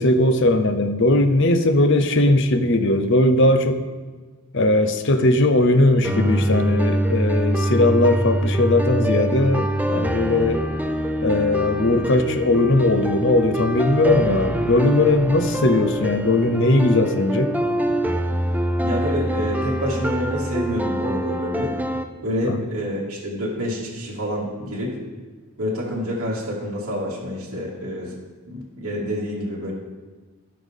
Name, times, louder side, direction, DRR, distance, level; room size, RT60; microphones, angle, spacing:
voice 1, 0.0-3.8 4.5-10.7 11.2-17.5 22.4-22.6, left 2 dB, 55° left, 8 dB, 0.7 m, -19 dB
sound 1, 6.0-22.0, right 1 dB, 5° right, 0.4 m, -24 dB
voice 2, 18.8-21.7 22.2-25.0 25.6-28.1 28.4-29.7, equal, 65° right, -6 dB, 2.2 m, -27 dB
16.0 x 5.8 x 3.6 m, 1.4 s
head